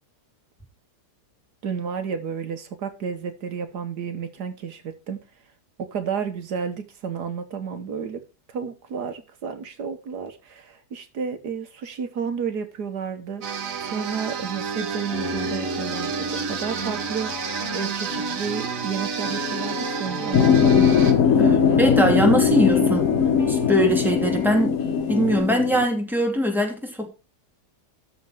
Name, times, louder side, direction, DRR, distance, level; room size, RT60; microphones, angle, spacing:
voice 1, 1.6-5.2 5.8-8.2 8.5-21.8, right 6 dB, 75° right, 1.7 m, -32 dB
sound 1, 13.4-21.1, right 6 dB, 55° right, 1.6 m, -30 dB
sound 2, 14.9-25.4, left 2 dB, 30° left, 2.0 m, -33 dB
sound 3, 20.3-25.9, left 7 dB, 60° left, 1.3 m, -20 dB
voice 2, 21.4-23.1 23.5-24.8 25.1-27.1, equal, ahead, 2.8 m, -21 dB
13.0 x 4.6 x 6.1 m
omnidirectional pair, 1.7 m